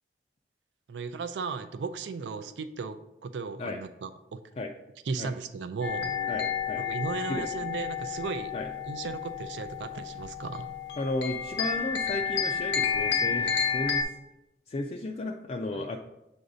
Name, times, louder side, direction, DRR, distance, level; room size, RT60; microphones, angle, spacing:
voice 1, 0.9-4.4 5.1-6.3 6.8-8.5 8.9-10.7 15.7-15.9, right 5 dB, 90° right, 11 dB, 0.4 m, -36 dB
sound 1, 5.8-14.0, left 7 dB, 90° left, 0.8 m, -31 dB
voice 2, 6.3-6.8 7.3-7.6 8.5-8.7 11.0-14.0 14.7-16.0, left 2 dB, 35° left, 2 dB, 0.3 m, -34 dB
7.7 x 2.6 x 4.9 m, 0.92 s
head